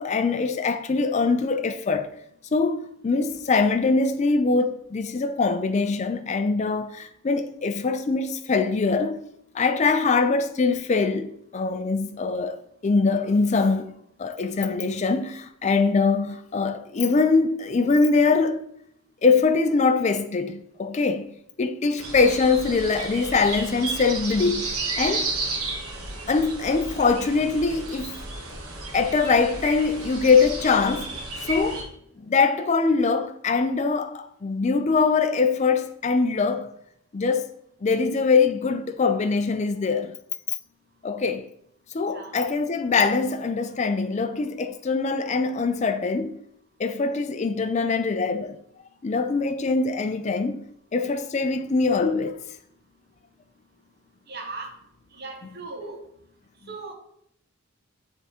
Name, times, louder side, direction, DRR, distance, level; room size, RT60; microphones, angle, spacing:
voice 1, 0.0-2.1 2.5-9.2 9.5-12.6 12.8-18.7 19.2-21.2 21.6-25.3 26.3-28.2 28.9-31.2 31.5-31.8 32.2-36.7 37.1-37.5 37.8-40.2 40.5-40.6 41.0-41.5 41.9-46.4 46.8-48.6 49.0-50.6 50.9-52.4, left 4 dB, 35° left, 0.4 m, -23 dB
sound 1, 22.0-31.8, right 2 dB, 85° right, 1.3 m, -33 dB
voice 2, 42.1-42.4 54.3-54.7 55.1-56.0 56.7-56.9, right 3 dB, 50° right, 1.1 m, -37 dB
6.7 x 3.5 x 4.2 m
head